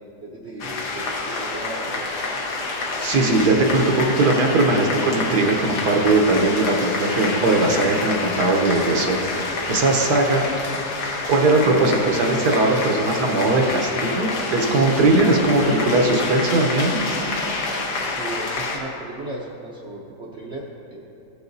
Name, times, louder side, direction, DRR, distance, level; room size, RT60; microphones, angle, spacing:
voice 1, 0.0-2.2 2.9-3.0 10.5-10.6 18.0-21.0, right 2 dB, 55° right, -3 dB, 0.8 m, -36 dB
sound 1, 0.6-18.8, left 3 dB, 70° left, 1.5 m, -27 dB
voice 2, 3.0-10.4 11.3-17.0, right 2 dB, 70° right, 1 dB, 1.4 m, -19 dB
14.5 x 6.9 x 2.6 m, 2.8 s
omnidirectional pair, 1.8 m